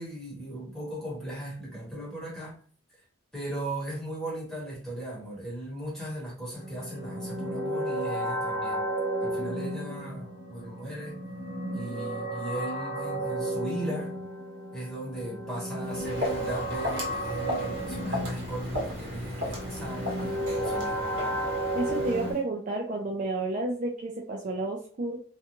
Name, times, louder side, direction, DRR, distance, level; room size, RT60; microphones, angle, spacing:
voice 1, 0.0-2.6 3.3-8.8 9.2-11.2 11.7-14.1 14.7-21.5, right 1 dB, ahead, 1.1 m, -37 dB
sound 1, 6.5-22.3, right 1 dB, 35° left, 0.8 m, -33 dB
Walk footsteps, 15.8-22.4, left 1 dB, 60° right, 1.0 m, -36 dB
voice 2, 21.7-25.2, right 2 dB, 35° right, 0.3 m, -31 dB
2.4 x 2.2 x 2.9 m
head